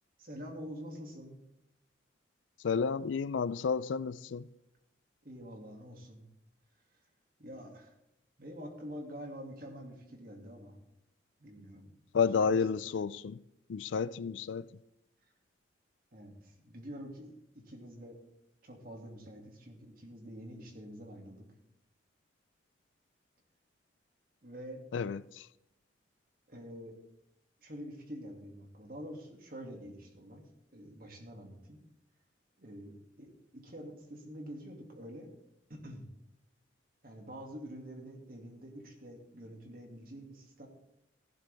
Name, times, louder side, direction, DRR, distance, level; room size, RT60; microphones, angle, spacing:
voice 1, 0.2-1.4 5.2-6.3 6.9-7.0 7.4-7.9 8.4-10.8 11.4-11.9 12.2-12.5 16.1-18.2 18.6-21.5 24.4-24.8 26.5-27.0 27.6-31.8 32.6-35.3 35.7-36.1 37.0-40.7, equal, 50° right, 2.4 m, -47 dB
voice 2, 2.6-4.5 12.1-13.4 13.7-14.7 24.9-25.5, left 5 dB, 80° left, 0.4 m, -31 dB
15.0 x 11.5 x 3.5 m
head